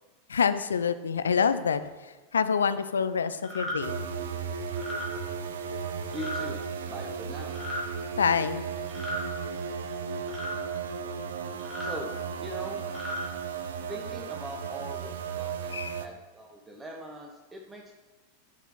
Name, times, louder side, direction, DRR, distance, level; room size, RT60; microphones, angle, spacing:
voice 1, 0.3-4.0 8.2-8.7 15.7-16.0, left 6 dB, 70° left, 13 dB, 0.3 m, -27 dB
sound 1, 3.4-3.8 4.7-5.1 6.1-6.4 7.5-7.8 8.9-9.3 10.3-10.6 11.6-11.9 12.8-13.2, equal, 5° left, 2.3 m, -35 dB
sound 2, 3.8-16.1, right 6 dB, 60° right, 0.5 m, -35 dB
voice 2, 6.1-6.6 6.9-7.6 11.8-12.1 12.4-12.8 13.9-15.7 16.0-17.9, equal, 10° right, 1 dB, 0.8 m, -41 dB
6.7 x 4.8 x 5.5 m, 1.2 s
figure-of-eight pair, 90°, 0 cm